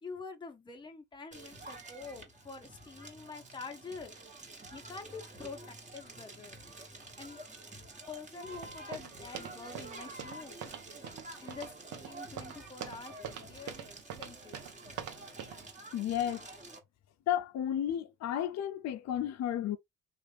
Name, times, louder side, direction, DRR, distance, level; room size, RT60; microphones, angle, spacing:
voice 1, 0.0-4.1 4.7-6.6 7.2-7.4 8.1-10.6 11.4-13.9 14.2-14.8, left 4 dB, 15° left, 0.8 m, -46 dB
Crackle, 1.3-16.8, right 2 dB, 25° right, 1.2 m, -49 dB
sound 1, 8.5-15.7, right 8 dB, 80° right, 0.9 m, -45 dB
voice 2, 15.9-16.5 17.3-19.8, left 10 dB, 60° left, 0.5 m, -32 dB
3.4 x 2.4 x 3.2 m
cardioid pair, 90°, 30 cm